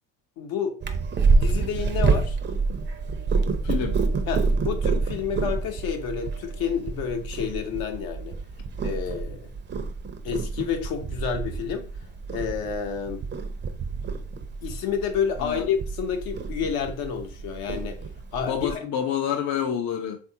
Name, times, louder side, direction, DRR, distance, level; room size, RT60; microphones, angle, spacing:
voice 1, 0.4-0.8 1.3-2.4 4.3-8.4 8.8-9.5 10.2-11.9 12.3-13.2 14.6-18.0 18.3-18.8, left 7 dB, 70° left, 0.8 m, -29 dB
Purr, 0.8-18.7, right 4 dB, 30° right, 0.5 m, -28 dB
voice 2, 3.6-4.0 15.4-15.7 18.4-20.2, left 8 dB, 50° left, 0.5 m, -28 dB
3.4 x 2.5 x 2.7 m
supercardioid pair, 80°, 37 cm